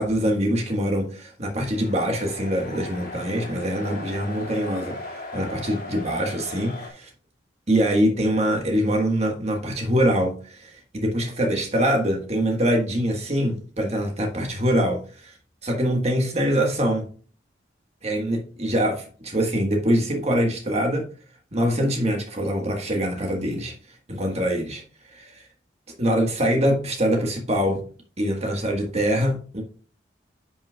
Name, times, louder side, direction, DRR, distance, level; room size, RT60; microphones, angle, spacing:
voice 1, 0.0-7.1 7.7-15.3 15.6-17.0 18.0-21.0 21.5-23.7 24.1-24.8 25.1-25.4 26.0-27.8 28.2-29.6, equal, 35° right, 1.5 m, -24 dB
sound 1, 1.7-6.9, left 2 dB, 50° left, 2.3 m, -37 dB
10.0 x 6.2 x 2.3 m
head